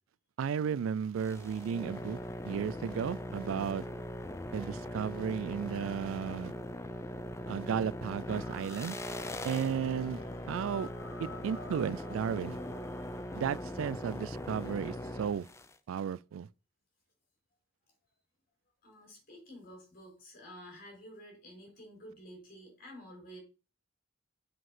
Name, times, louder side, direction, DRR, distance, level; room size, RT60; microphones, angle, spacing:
voice 1, 0.4-2.2 2.4-3.9 4.5-6.5 7.5-9.0 9.4-10.2 10.5-10.9 11.2-12.6 13.3-15.5 15.9-16.5, right 7 dB, 80° right, 0.3 m, -34 dB
sound 1, 1.2-15.7, left 1 dB, 15° left, 0.5 m, -41 dB
sound 2, 8.3-13.3, left 3 dB, 65° left, 1.5 m, -51 dB
voice 2, 18.8-23.4, equal, 45° left, 4.9 m, -51 dB
7.8 x 5.1 x 5.9 m
head